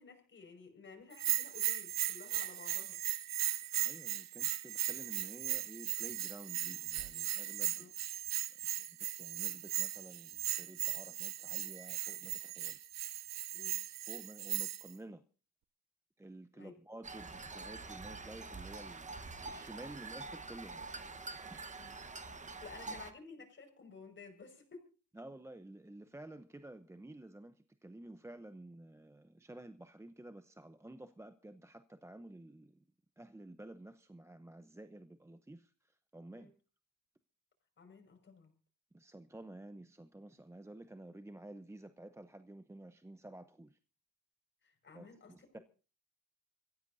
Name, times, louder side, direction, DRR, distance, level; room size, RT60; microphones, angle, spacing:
voice 1, 0.0-3.0 7.8-7.9 13.5-13.8 16.5-16.8 21.8-21.9 22.6-24.9 36.3-36.5 37.8-38.5 44.6-45.6, left 4 dB, 40° left, 4 dB, 5.6 m, -54 dB
Bell, 1.1-14.9, right 12 dB, 60° right, 0.8 m, -37 dB
voice 2, 3.8-7.9 8.5-8.6 8.9-12.8 14.0-15.2 16.2-20.9 21.5-21.7 22.9-23.0 25.1-32.8 33.2-36.5 38.9-43.8 44.9-45.6, right 1 dB, 10° right, 10 dB, 0.7 m, -52 dB
sound 1, 17.0-23.1, right 3 dB, 25° right, 1.2 m, -46 dB
25.0 x 15.5 x 2.7 m, 0.35 s
cardioid pair, 90°, 30 cm